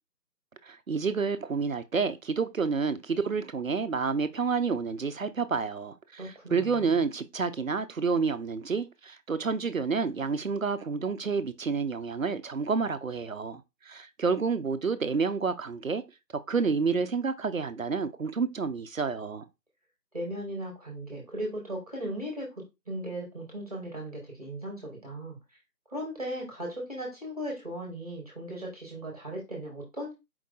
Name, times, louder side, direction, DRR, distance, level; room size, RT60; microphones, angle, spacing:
voice 1, 0.6-16.0 16.5-19.4, right 5 dB, 55° right, 0.5 m, -29 dB
voice 2, 6.2-6.9 20.1-22.5 22.9-25.4 25.9-30.1, right 1 dB, 25° right, 1.1 m, -37 dB
4.6 x 2.6 x 3.7 m
figure-of-eight pair, 165°, 49 cm